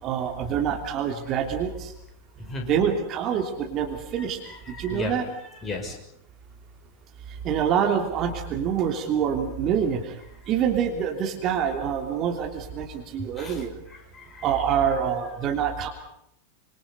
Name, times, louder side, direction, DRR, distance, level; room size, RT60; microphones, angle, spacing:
voice 1, 0.0-1.9 2.7-4.4 4.8-5.2 7.4-10.1 10.5-13.7 14.4-15.9, right 8 dB, 35° right, 4 dB, 3.1 m, -26 dB
voice 2, 2.4-2.7 4.2-5.2 5.6-5.9 13.4-13.6 13.9-14.5, left 3 dB, 20° left, 3 dB, 6.1 m, -36 dB
27.0 x 26.0 x 5.4 m, 0.75 s
figure-of-eight pair, 90°, 0 cm